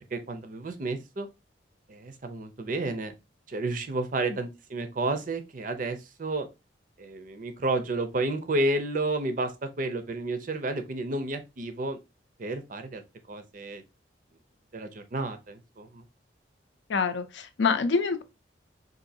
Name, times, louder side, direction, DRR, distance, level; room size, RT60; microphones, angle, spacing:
voice 1, 0.1-1.3 1.9-3.1 3.5-6.5 7.0-12.0 12.4-13.0 13.3-13.8 14.7-16.0, right 2 dB, 45° right, 0.5 m, -31 dB
voice 2, 16.9-18.2, left 5 dB, 70° left, 0.5 m, -26 dB
4.0 x 2.6 x 2.6 m
head